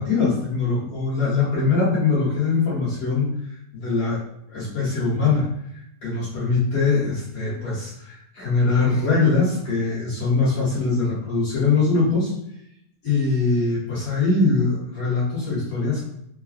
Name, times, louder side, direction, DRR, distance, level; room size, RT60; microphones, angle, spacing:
voice 1, 0.0-3.3 3.7-4.2 4.5-5.5 6.0-12.3 13.0-16.0, left 4 dB, 55° left, -8 dB, 1.8 m, -22 dB
5.1 x 2.2 x 2.4 m, 0.76 s
omnidirectional pair, 3.7 m